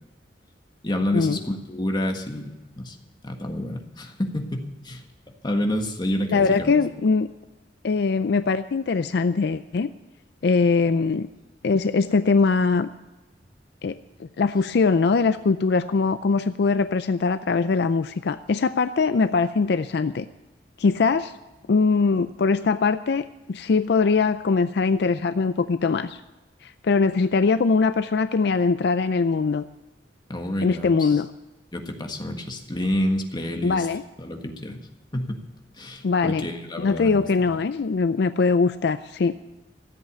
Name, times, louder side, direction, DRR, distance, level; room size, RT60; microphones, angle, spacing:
voice 1, 0.8-3.0 3.2-5.0 5.4-6.8 30.3-31.2 31.7-33.8 34.2-34.8 35.1-35.4 35.8-37.6, left 1 dB, 25° left, 3 dB, 1.6 m, -29 dB
voice 2, 6.3-7.3 7.8-9.9 10.4-11.3 11.6-12.9 13.8-20.3 20.8-21.3 21.7-26.2 26.6-29.6 30.6-31.3 33.6-34.0 36.0-36.5 36.8-39.4, left 4 dB, 65° left, 12 dB, 0.4 m, -22 dB
13.5 x 8.1 x 8.3 m, 1.1 s
head